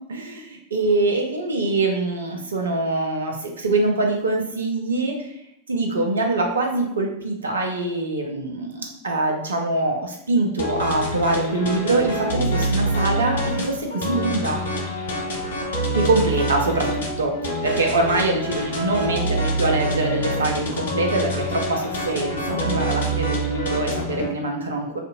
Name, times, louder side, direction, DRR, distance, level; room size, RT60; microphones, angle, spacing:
voice 1, 0.1-5.3 5.7-14.6 15.9-25.0, right 2 dB, 70° right, 2 dB, 0.6 m, -24 dB
sound 1, 10.6-24.3, right 1 dB, 65° left, 0.7 m, -26 dB
2.6 x 2.6 x 4.0 m, 0.78 s
figure-of-eight pair, 90°, 0 cm